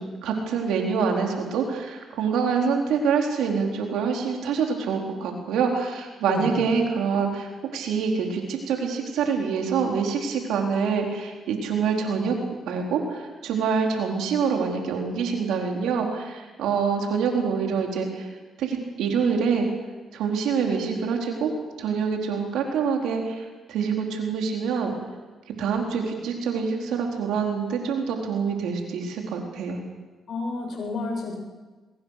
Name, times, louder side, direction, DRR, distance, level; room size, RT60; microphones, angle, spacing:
voice 1, 0.0-12.4 12.7-18.3 18.6-19.7 20.1-21.5 21.8-24.9 25.6-29.8, right 6 dB, 85° right, 2 dB, 4.2 m, -26 dB
voice 2, 6.3-6.6 30.3-31.3, left 3 dB, 65° left, 1 dB, 8.0 m, -30 dB
22.0 x 22.0 x 6.7 m, 1.3 s
supercardioid pair, 60°, 0 cm